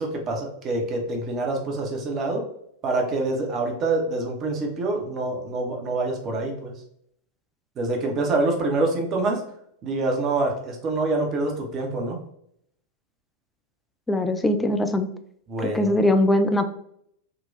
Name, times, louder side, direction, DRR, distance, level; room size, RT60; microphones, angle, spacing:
voice 1, 0.0-2.4 2.8-6.8 7.8-9.4 9.8-12.2 15.5-15.9, right 2 dB, 30° right, 2 dB, 0.8 m, -26 dB
voice 2, 14.1-15.1 15.6-16.7, left 1 dB, 10° left, 8 dB, 0.3 m, -21 dB
3.8 x 2.3 x 2.6 m, 0.70 s
figure-of-eight pair, 90°, 0 cm